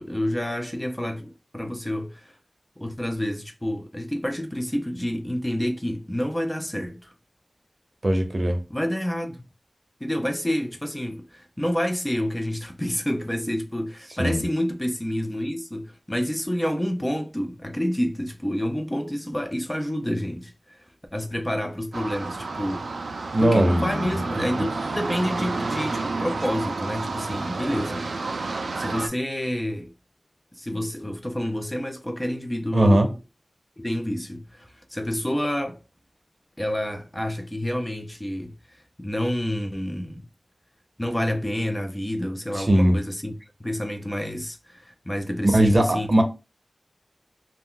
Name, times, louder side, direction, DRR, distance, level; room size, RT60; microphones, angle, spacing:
voice 1, 0.0-2.4 2.8-7.1 8.7-9.4 10.0-20.9 21.1-28.4 28.8-29.9 30.5-33.1 33.8-35.8 36.6-40.3 41.0-43.3 43.6-46.1, equal, 15° left, 0.4 m, -29 dB
voice 2, 8.0-8.6 14.2-14.4 23.3-24.1 32.7-33.1 42.6-43.0 45.5-46.2, right 1 dB, 40° right, 0.7 m, -19 dB
sound 1, 21.9-29.1, right 3 dB, 85° right, 0.3 m, -30 dB
2.3 x 2.1 x 3.6 m
wide cardioid pair, 75°, 0 cm